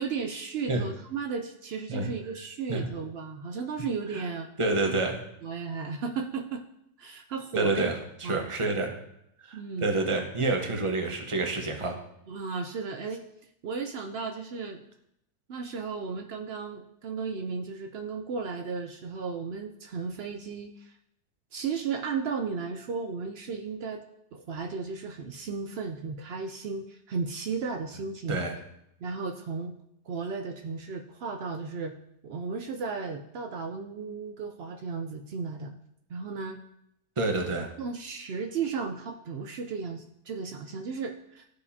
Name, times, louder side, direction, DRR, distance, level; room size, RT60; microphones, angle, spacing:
voice 1, 0.0-4.5 4.8-4.9 5.4-6.7 7.0-7.9 8.2-8.5 9.5-9.9 12.3-13.2 13.6-14.8 15.5-20.9 21.5-24.0 24.3-28.4 29.0-29.7 30.1-31.9 32.2-35.7 36.1-36.6 37.8-41.5, right 5 dB, 85° right, 4 dB, 0.5 m, -34 dB
voice 2, 4.6-5.2 7.5-7.9 8.2-8.9 9.5-11.9 28.3-28.5 37.2-37.7, right 2 dB, 25° right, 3 dB, 0.8 m, -28 dB
14.0 x 4.8 x 2.7 m, 0.78 s
omnidirectional pair, 1.7 m